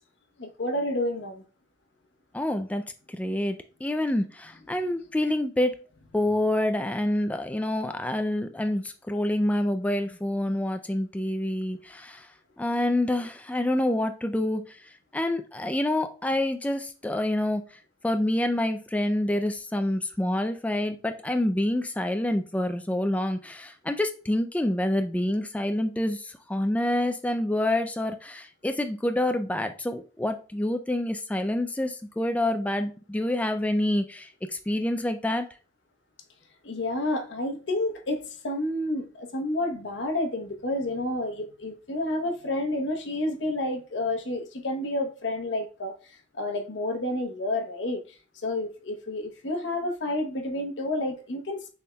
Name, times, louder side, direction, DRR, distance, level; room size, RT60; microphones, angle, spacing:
voice 1, 0.4-1.4 36.6-45.9 46.3-48.0 48.4-51.7, left 1 dB, 80° left, 0.9 m, -30 dB
voice 2, 2.3-2.8 3.1-3.6 3.8-5.8 6.1-12.3 12.6-14.7 15.1-17.6 18.0-34.3 34.7-35.5, left 1 dB, 10° left, 0.3 m, -27 dB
6.6 x 3.6 x 2.2 m
head